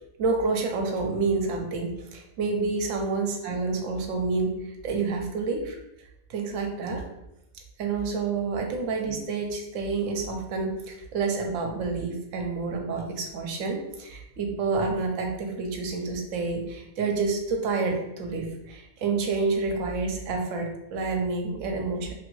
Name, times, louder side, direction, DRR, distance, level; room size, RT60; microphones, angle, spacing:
voice 1, 0.2-5.8 6.3-7.0 7.8-22.1, right 4 dB, 75° right, 2 dB, 0.9 m, -28 dB
2.8 x 2.5 x 3.0 m, 0.87 s
omnidirectional pair, 1.4 m